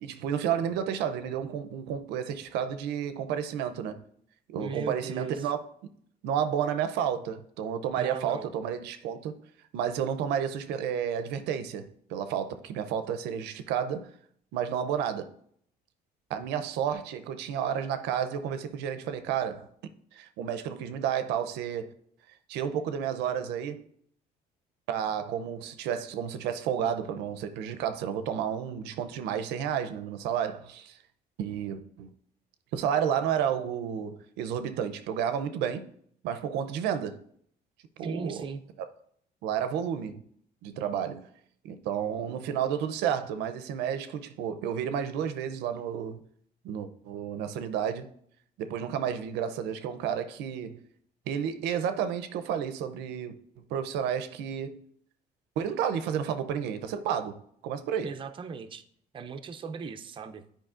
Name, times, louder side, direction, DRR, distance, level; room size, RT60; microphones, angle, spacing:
voice 1, 0.0-4.0 4.5-5.9 6.2-9.4 9.7-14.1 14.5-15.3 16.3-19.7 20.1-21.9 22.5-23.8 24.9-31.0 31.4-32.1 32.7-35.9 36.2-37.2 38.0-38.4 39.4-40.2 40.6-41.3 41.6-46.2 46.6-48.1 48.6-50.8 51.3-54.8 55.6-58.1, right 8 dB, 90° right, 0.5 m, -31 dB
voice 2, 4.6-5.5 8.0-8.5 38.0-38.6 58.0-58.8 59.1-60.4, right 5 dB, 30° right, 0.5 m, -37 dB
9.0 x 5.0 x 2.4 m
cardioid pair, 110°, 17 cm